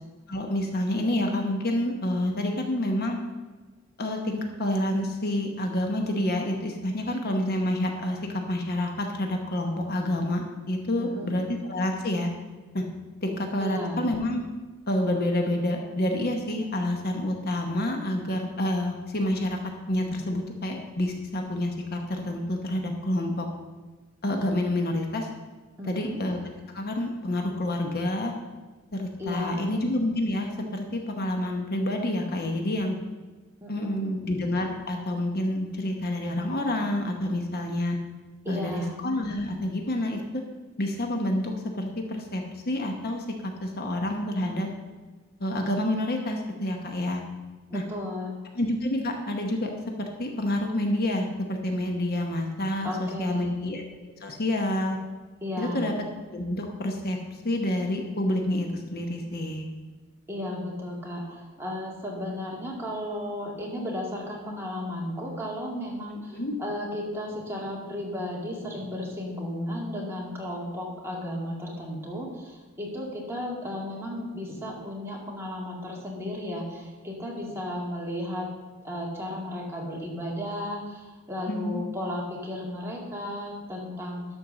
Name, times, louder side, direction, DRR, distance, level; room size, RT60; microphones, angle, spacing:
voice 1, 0.3-3.2 4.0-8.2 8.5-12.3 12.7-12.8 13.2-14.5 14.9-19.6 19.9-23.5 24.2-25.3 25.9-26.4 26.7-28.3 28.9-33.0 33.7-38.0 38.5-40.4 40.8-44.7 45.4-47.2 47.7-47.8 48.5-49.7 50.0-53.8 54.2-55.0 55.6-55.9 56.3-57.2 57.4-59.6 66.3-66.6 81.5-81.8, left 1 dB, 50° left, 3 dB, 1.0 m, -28 dB
voice 2, 11.0-11.4 13.6-14.0 25.8-26.2 29.2-29.7 33.6-34.1 38.4-38.9 47.7-48.3 52.8-53.6 55.4-55.9 60.3-78.5 78.8-84.3, left 1 dB, 10° right, -4 dB, 2.2 m, -34 dB
12.0 x 4.6 x 6.5 m, 1.3 s
head